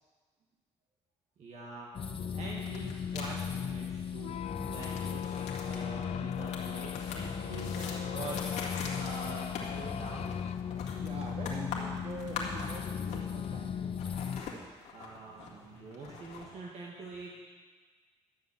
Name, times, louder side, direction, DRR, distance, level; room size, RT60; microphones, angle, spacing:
voice 1, 1.4-4.4 4.6-10.3 14.9-17.3, right 3 dB, 70° right, -3 dB, 1.9 m, -45 dB
sound 1, 1.9-14.4, left 7 dB, 50° left, 0.9 m, -37 dB
sound 2, 2.6-3.3 4.6-13.6 13.8-16.5, left 5 dB, 90° left, 2.0 m, -43 dB
sound 3, 4.1-14.5, left 10 dB, 65° left, 0.5 m, -44 dB
voice 2, 10.9-14.2, right 3 dB, 55° right, 0 dB, 2.4 m, -45 dB
12.5 x 7.2 x 7.3 m, 1.4 s
cardioid pair, 75°, 12 cm